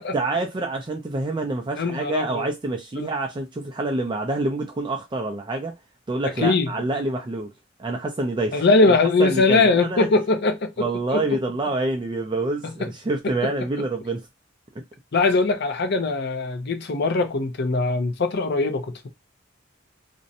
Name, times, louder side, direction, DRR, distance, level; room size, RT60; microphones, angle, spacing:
voice 1, 0.0-5.7 6.1-7.5 7.8-10.1 10.8-14.2, right 2 dB, 25° right, 0.4 m, -27 dB
voice 2, 1.8-2.5 3.0-3.1 6.4-6.8 8.5-11.2 12.6-12.9 15.1-19.1, left 3 dB, 60° left, 0.6 m, -21 dB
2.5 x 2.1 x 2.6 m
head